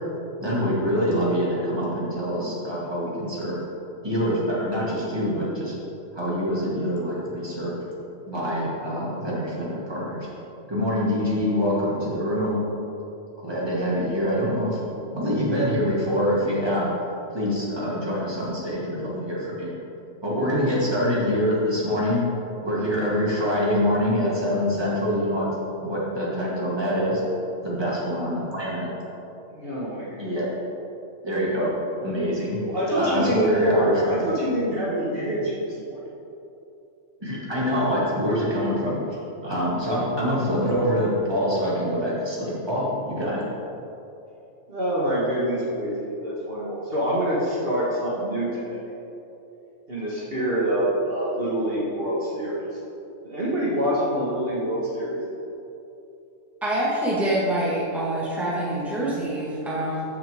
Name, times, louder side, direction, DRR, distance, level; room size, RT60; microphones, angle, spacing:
voice 1, 0.4-3.6 4.0-5.8 6.1-7.8 8.3-10.3 10.7-12.6 13.4-14.8 15.1-16.9 17.3-19.7 20.2-22.3 22.6-25.5 25.8-27.2 27.6-28.9 30.2-30.5 31.2-31.7 32.0-32.6 33.0-34.3 37.2-39.0 39.4-43.4, equal, 20° right, -7 dB, 2.3 m, -25 dB
voice 2, 29.6-30.2 32.6-36.0 44.7-48.8 49.9-52.6 53.2-55.2, right 1 dB, 45° right, -7 dB, 1.8 m, -26 dB
voice 3, 56.6-60.0, right 1 dB, ahead, -7 dB, 1.8 m, -25 dB
14.0 x 6.4 x 3.6 m, 2.9 s
omnidirectional pair, 1.3 m